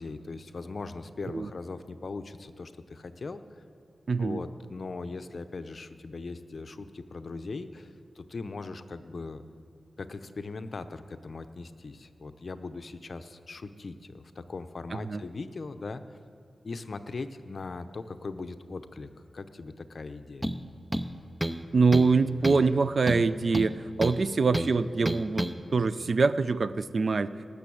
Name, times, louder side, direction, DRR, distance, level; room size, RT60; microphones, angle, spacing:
voice 1, 0.0-3.4 4.2-9.4 10.0-16.0 16.6-20.5, left 3 dB, 55° left, 10 dB, 0.7 m, -39 dB
voice 2, 4.1-4.4 14.9-15.2 21.7-27.3, right 4 dB, 55° right, 14 dB, 0.4 m, -24 dB
sound 1, 20.4-20.6 20.9-21.6 21.9-22.2 22.4-22.7 23.1-24.2 24.5-24.7 25.1-25.5, right 1 dB, 5° right, 0.6 m, -30 dB
18.5 x 6.9 x 8.5 m, 2.3 s
wide cardioid pair, 105°, 0 cm